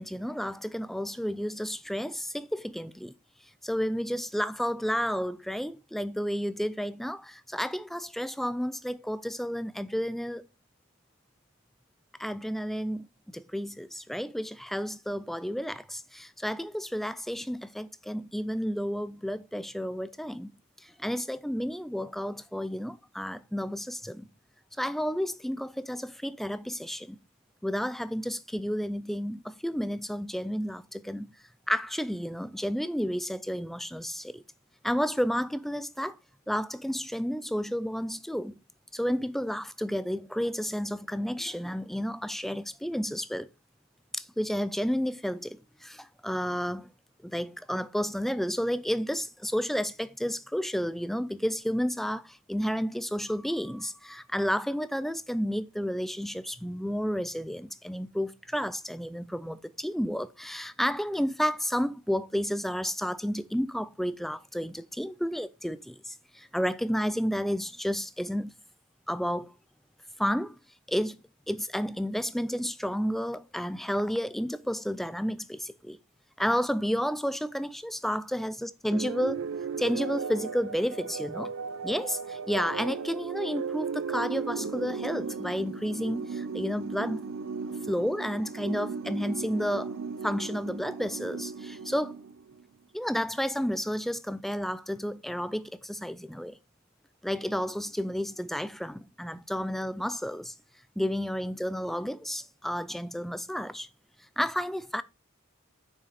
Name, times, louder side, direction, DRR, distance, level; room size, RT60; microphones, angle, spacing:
voice 1, 0.0-3.1 3.6-10.4 12.2-24.3 24.8-27.2 27.6-31.3 31.7-34.4 34.8-36.2 36.5-38.6 38.9-43.5 44.1-46.9 47.2-68.5 69.1-69.5 70.2-70.6 70.9-71.2 71.5-76.0 76.4-79.4 79.8-81.5 81.8-87.2 87.9-89.9 90.2-92.2 92.9-96.5 97.2-100.5 101.0-103.9 104.4-105.0, equal, ahead, 0.3 m, -31 dB
sound 1, 78.9-92.6, right 5 dB, 70° right, 0.5 m, -36 dB
6.4 x 6.3 x 4.1 m
head